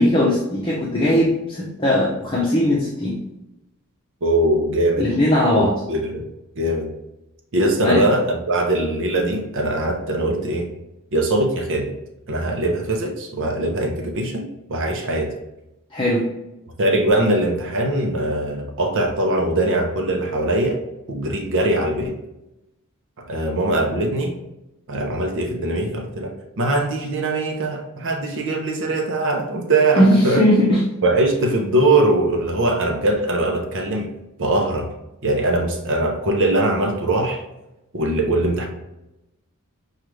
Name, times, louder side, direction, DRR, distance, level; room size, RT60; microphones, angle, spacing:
voice 1, 0.0-3.2 5.0-5.7 7.8-8.1 15.9-16.3 30.0-30.8, left 1 dB, 25° left, -6 dB, 0.7 m, -18 dB
voice 2, 4.2-5.2 5.6-6.3 6.6-6.9 7.5-10.7 11.1-11.9 12.3-15.3 16.8-20.8 21.1-22.2 23.3-24.3 24.9-30.4 31.0-34.1 34.4-34.9 35.2-37.4 37.9-38.7, right 1 dB, 60° right, 2 dB, 0.7 m, -21 dB
6.2 x 2.4 x 3.1 m, 0.92 s
head